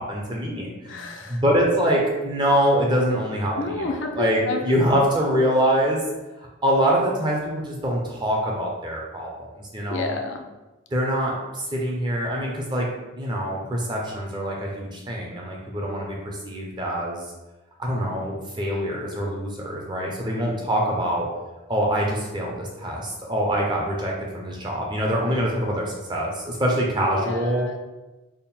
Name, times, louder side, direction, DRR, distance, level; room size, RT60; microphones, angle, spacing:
voice 1, 0.0-1.0 1.3-6.0 6.6-10.2 10.9-12.9 13.2-17.2 17.8-21.3 21.7-27.7, equal, 20° right, -2 dB, 0.5 m, -24 dB
voice 2, 0.8-1.4 3.6-4.8 9.9-10.5 27.0-27.8, left 3 dB, 70° left, 4 dB, 0.5 m, -30 dB
3.6 x 2.1 x 4.2 m, 1.1 s
head